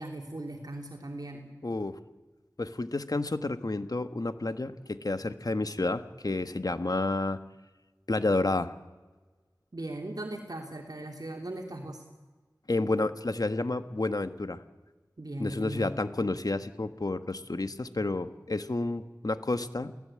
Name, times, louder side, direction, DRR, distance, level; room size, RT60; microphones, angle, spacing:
voice 1, 0.0-1.5 9.7-12.0 15.2-16.0, right 1 dB, 60° right, 2 dB, 2.9 m, -38 dB
voice 2, 1.6-2.0 2.6-7.4 8.1-8.7 12.7-14.6 15.4-19.9, left 2 dB, 60° left, 10 dB, 1.4 m, -30 dB
29.5 x 17.0 x 8.8 m, 1.3 s
wide cardioid pair, 50°, 7 cm